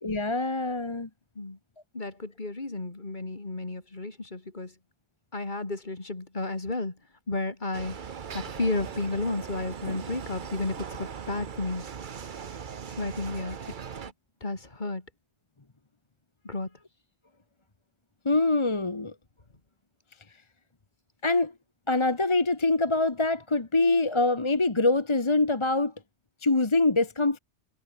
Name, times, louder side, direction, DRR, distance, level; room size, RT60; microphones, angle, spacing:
voice 1, 0.0-1.1 18.2-19.1 21.2-21.5 21.9-25.9 26.4-27.4, left 2 dB, 25° left, 1.2 m, -24 dB
voice 2, 1.9-4.7 5.3-7.0 7.3-8.0 8.3-11.8 13.0-13.6 14.0-14.1 14.4-15.0 16.4-16.7, left 2 dB, 40° left, 2.8 m, -32 dB
sound 1, 7.7-14.1, right 7 dB, 45° right, 1.0 m, -39 dB
omnidirectional pair, 1.2 m